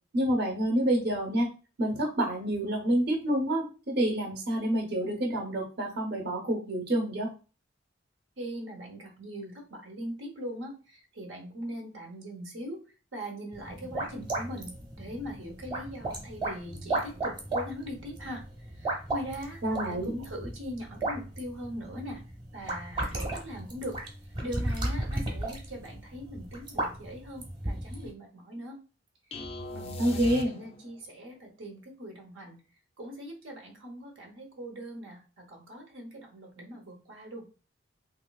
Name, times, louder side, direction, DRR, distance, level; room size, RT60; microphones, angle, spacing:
voice 1, 0.1-1.5 1.8-7.3 19.6-20.1 30.0-30.5, right 1 dB, 60° right, 0 dB, 0.8 m, -28 dB
voice 2, 8.4-12.8 13.1-14.7 15.0-18.4 18.7-19.6 19.9-22.2 22.5-24.0 24.4-28.8 29.7-32.6 33.0-37.5, equal, 85° right, 1 dB, 0.9 m, -41 dB
sound 1, 13.5-28.1, right 2 dB, 25° right, 0.9 m, -35 dB
sound 2, 29.3-31.0, left 2 dB, 30° left, 0.4 m, -39 dB
3.1 x 3.0 x 2.3 m, 0.34 s
head